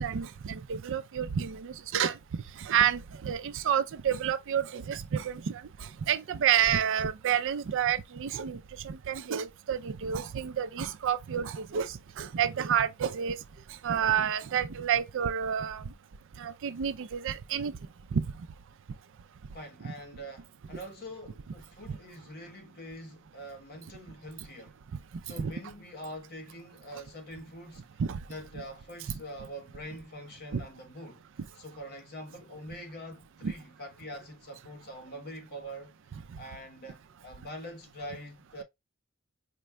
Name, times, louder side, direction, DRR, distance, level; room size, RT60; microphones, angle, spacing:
voice 1, 0.0-2.2 2.6-13.4 13.8-15.8 16.4-17.7 18.1-18.3 19.8-19.9 21.9-22.0 25.4-25.5 28.0-28.2 29.1-29.2 30.5-30.6 33.4-33.5, right 8 dB, 60° right, 0.4 m, -29 dB
voice 2, 19.5-24.8 25.2-27.9 28.3-31.2 31.6-36.0 36.4-38.6, equal, 50° left, 1.1 m, -44 dB
5.1 x 2.3 x 3.1 m
head